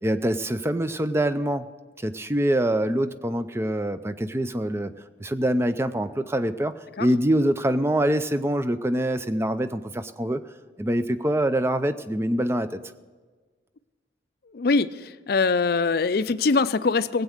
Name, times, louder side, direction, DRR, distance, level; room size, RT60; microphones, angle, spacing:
voice 1, 0.0-1.7 2.0-4.9 5.2-10.4 10.8-12.8, right 1 dB, 15° right, 11 dB, 0.5 m, -25 dB
voice 2, 14.5-17.2, left 4 dB, 55° left, 13 dB, 0.5 m, -23 dB
17.0 x 8.3 x 6.5 m, 1.4 s
head